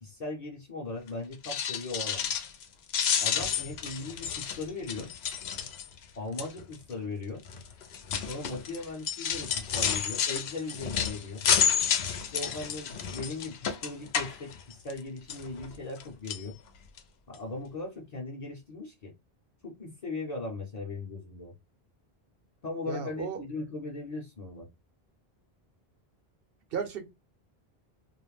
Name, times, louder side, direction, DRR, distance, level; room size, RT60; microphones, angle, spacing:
voice 1, 0.0-2.3 3.2-5.1 6.1-7.4 8.3-11.4 12.3-16.6 17.3-19.1 19.6-21.5 22.6-24.7, left 3 dB, 45° left, 0.7 m, -38 dB
sound 1, 1.3-2.6 2.9-6.0 6.4-6.7 7.5-15.0 15.3-16.0 16.3-16.5 17.0-17.1 17.3-17.4, left 8 dB, 80° left, 0.8 m, -30 dB
voice 2, 22.9-23.4 26.7-27.1, right 6 dB, 70° right, 0.9 m, -34 dB
2.4 x 2.0 x 3.0 m
omnidirectional pair, 1.0 m